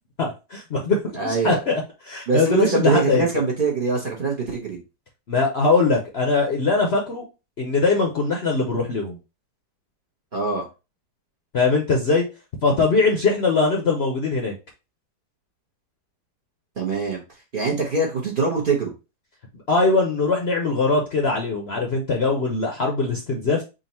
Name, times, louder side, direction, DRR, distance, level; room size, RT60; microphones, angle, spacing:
voice 1, 0.2-3.2 5.3-7.2 7.6-9.2 11.5-12.3 12.6-14.5 19.7-23.6, left 3 dB, 50° left, 1 dB, 0.8 m, -21 dB
voice 2, 1.1-1.6 2.3-4.8 10.3-10.6 16.8-17.2 17.5-18.9, right 4 dB, 40° right, -1 dB, 0.9 m, -23 dB
3.8 x 2.5 x 4.1 m, 0.28 s
omnidirectional pair, 1.7 m